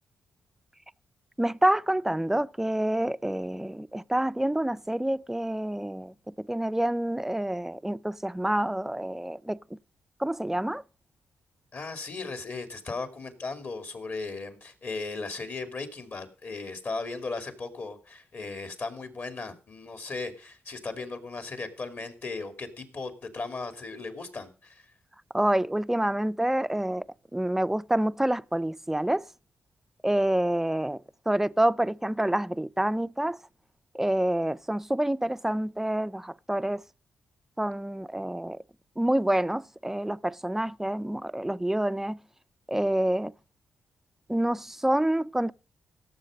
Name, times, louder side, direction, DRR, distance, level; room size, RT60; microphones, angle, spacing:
voice 1, 1.4-9.6 10.2-10.8 25.3-27.0 27.3-29.2 30.0-31.0 31.3-33.4 33.9-36.8 37.6-38.6 39.0-42.2 42.7-43.3 44.3-45.5, right 1 dB, 5° right, 0.5 m, -27 dB
voice 2, 11.7-24.8, left 3 dB, 50° left, 2.7 m, -37 dB
16.5 x 7.5 x 5.0 m
cardioid pair, 65°, 5 cm